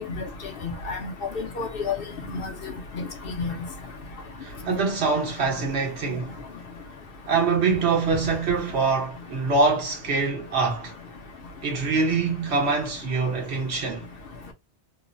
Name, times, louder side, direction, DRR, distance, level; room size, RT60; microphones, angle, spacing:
voice 1, 0.6-1.9 2.3-3.5, left 4 dB, 60° left, 0.8 m, -31 dB
voice 2, 4.4-6.4 7.3-10.9 11.6-14.0, right 4 dB, 70° right, 1.2 m, -24 dB
3.0 x 2.0 x 2.4 m
omnidirectional pair, 1.1 m